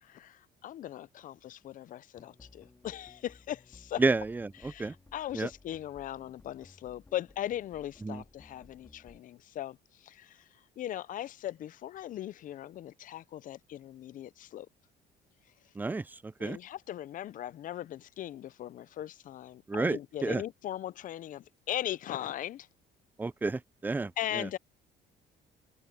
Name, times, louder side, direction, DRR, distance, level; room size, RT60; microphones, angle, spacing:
voice 1, 0.0-4.0 4.6-10.4 10.8-14.7 16.4-22.7 24.2-24.6, left 12 dB, 50° left, 0.5 m, -39 dB
sound 1, 2.2-9.2, left 3 dB, 15° left, 2.4 m, -58 dB
voice 2, 4.0-4.9 5.3-5.5 8.0-8.2 15.8-16.6 19.7-20.4 23.2-24.5, right 3 dB, 10° right, 0.4 m, -31 dB
cardioid pair, 110°, 17 cm